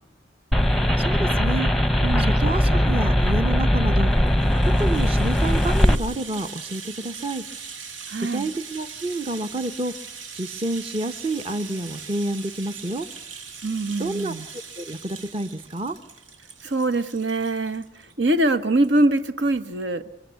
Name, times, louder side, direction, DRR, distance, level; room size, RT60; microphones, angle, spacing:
sound 1, 0.5-6.0, equal, ahead, 0.9 m, -20 dB
voice 1, 1.0-1.7 2.2-4.1 4.7-7.4 8.3-9.9 10.3-13.1 14.0-14.3 14.8-16.0, right 2 dB, 30° right, 0.9 m, -29 dB
voice 2, 2.0-2.3 8.1-8.5 13.6-14.5 16.6-17.8 18.2-20.0, right 2 dB, 65° right, 1.2 m, -23 dB
Rattle (instrument), 4.0-18.1 18.5-18.6 18.8-19.0, right 5 dB, 85° right, 2.5 m, -41 dB
24.5 x 24.0 x 8.1 m
head